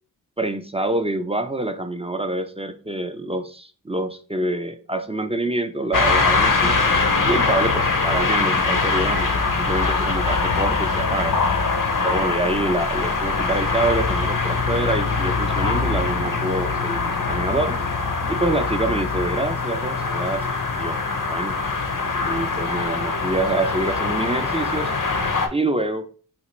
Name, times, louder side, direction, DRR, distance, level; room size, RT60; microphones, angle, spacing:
voice 1, 0.4-6.8 7.2-11.4 12.0-17.8 18.3-20.4 20.8-21.0 21.3-21.5 22.2-24.9 25.5-26.1, right 2 dB, 15° right, 8 dB, 0.3 m, -26 dB
sound 1, 5.9-25.5, left 4 dB, 50° left, 0.7 m, -22 dB
4.1 x 2.4 x 3.0 m, 0.39 s
wide cardioid pair, 55°, 41 cm